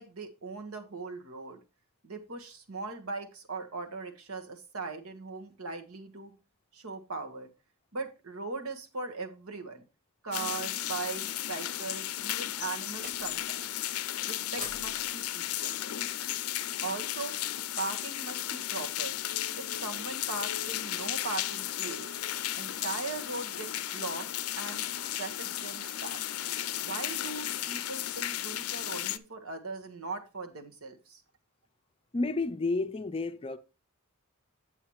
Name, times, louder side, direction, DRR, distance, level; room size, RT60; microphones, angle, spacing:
voice 1, 0.0-1.6 2.0-6.3 6.7-7.5 7.9-9.8 10.2-13.7 14.3-15.8 16.8-17.3 17.8-19.2 19.5-22.1 22.5-24.3 24.5-24.8 25.2-26.2 26.8-31.2, right 3 dB, 75° right, 1.4 m, -39 dB
sound 1, 10.3-29.2, left 13 dB, 90° left, 0.5 m, -34 dB
sound 2, 13.0-13.6 14.6-16.8, right 5 dB, 40° right, 0.6 m, -51 dB
Domestic sounds home sounds, 19.7-28.4, right 3 dB, 55° right, 1.5 m, -55 dB
voice 2, 32.1-33.6, left 3 dB, 25° left, 0.5 m, -31 dB
9.0 x 7.8 x 3.0 m
head